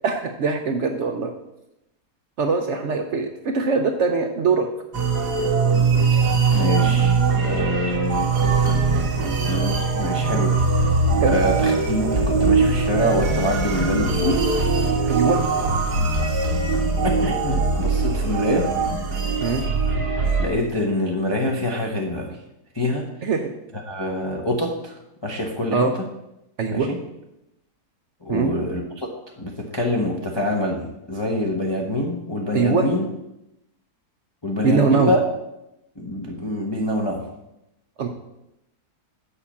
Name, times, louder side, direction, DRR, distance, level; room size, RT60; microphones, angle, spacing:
voice 1, 0.0-1.3 2.4-4.7 11.2-11.4 15.1-15.4 19.4-19.6 23.2-23.5 25.7-26.0 26.6-26.9 28.3-28.5 32.5-32.9 34.6-35.1 38.0-38.1, right 4 dB, 60° right, 5 dB, 0.8 m, -22 dB
sound 1, 4.9-20.5, right 4 dB, 80° right, 1.8 m, -21 dB
voice 2, 6.5-10.6 11.3-14.4 17.0-18.7 20.4-22.4 22.7-23.1 23.7-24.9 25.2-25.9 26.7-27.0 28.2-29.1 29.4-33.1 34.4-35.2 36.0-37.2, left 1 dB, 25° left, -1 dB, 0.7 m, -25 dB
7.0 x 5.0 x 7.1 m, 0.88 s
omnidirectional pair, 1.7 m